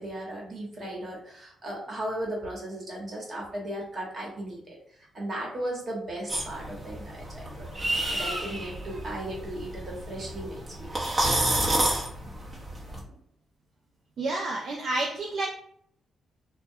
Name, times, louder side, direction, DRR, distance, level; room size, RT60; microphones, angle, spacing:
voice 1, 0.0-4.8 5.1-7.7 8.1-11.1, right 1 dB, 45° right, -3 dB, 1.1 m, -36 dB
sound 1, 6.3-13.0, right 1 dB, 30° right, 0.8 m, -30 dB
voice 2, 14.2-15.5, right 2 dB, 65° right, -1 dB, 0.4 m, -29 dB
2.2 x 2.1 x 2.7 m, 0.67 s
cardioid pair, 80°, 0 cm